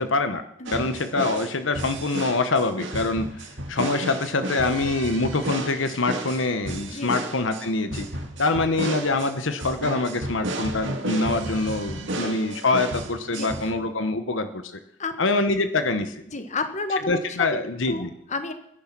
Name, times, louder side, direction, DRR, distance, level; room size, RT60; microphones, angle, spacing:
voice 1, 0.0-0.4 0.7-8.1 8.4-14.8 15.2-16.1 17.1-18.1, left 3 dB, 75° left, 9 dB, 1.0 m, -25 dB
sound 1, 0.7-13.7, right 1 dB, 70° right, 2.3 m, -33 dB
voice 2, 13.3-13.7 15.0-15.1 16.3-17.4 17.7-18.5, left 3 dB, 40° left, 8 dB, 1.6 m, -31 dB
20.0 x 11.0 x 6.0 m, 0.79 s
head